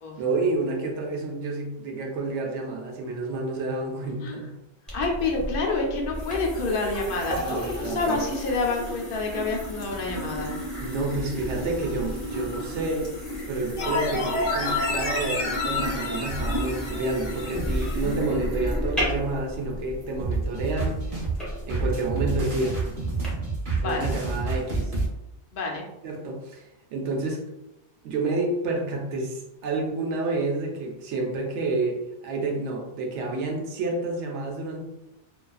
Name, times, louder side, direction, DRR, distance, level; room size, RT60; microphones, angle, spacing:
voice 1, 0.2-4.5 7.4-8.2 10.8-13.1 13.5-21.0 21.7-22.8 23.8-24.9 26.0-27.4 28.0-34.9, right 2 dB, 80° right, 1 dB, 0.9 m, -29 dB
voice 2, 4.9-10.5 18.0-18.5 23.8-24.1 25.5-25.8, left 3 dB, 60° left, 0 dB, 0.6 m, -28 dB
sound 1, 4.9-23.3, equal, ahead, 0.7 m, -33 dB
sound 2, 13.8-18.0 18.3-18.4, left 3 dB, 85° left, 1.0 m, -29 dB
sound 3, 20.2-25.1, right 3 dB, 50° right, 0.9 m, -28 dB
2.4 x 2.2 x 2.3 m, 0.94 s
omnidirectional pair, 1.2 m